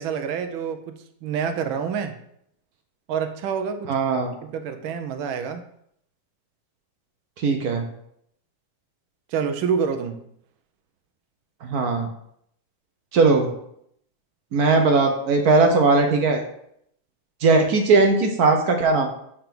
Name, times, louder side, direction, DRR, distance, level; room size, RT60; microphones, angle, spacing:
voice 1, 0.0-2.2 3.1-3.9 4.4-5.6 9.3-10.2, right 6 dB, 90° right, 7 dB, 1.4 m, -27 dB
voice 2, 3.9-4.3 7.4-7.8 11.6-12.1 13.1-13.5 14.5-16.4 17.4-19.1, right 3 dB, 60° right, 4 dB, 1.1 m, -19 dB
5.1 x 4.6 x 5.9 m, 0.72 s
omnidirectional pair, 2.2 m